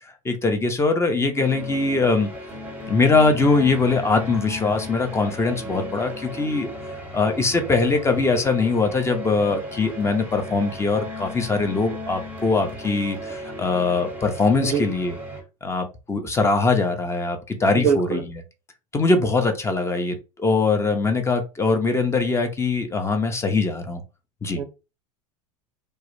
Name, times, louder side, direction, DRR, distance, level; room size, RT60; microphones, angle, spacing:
voice 1, 0.2-2.3 2.9-6.7 7.1-15.2 15.6-18.2 18.9-24.0 24.4-24.6, left 3 dB, 15° left, 0.5 m, -22 dB
sound 1, 1.3-15.4, left 1 dB, 10° right, 0.8 m, -35 dB
voice 2, 17.7-18.2 24.6-24.7, right 7 dB, 85° right, 0.5 m, -23 dB
2.3 x 2.0 x 2.9 m
hypercardioid pair, 85°, 18 cm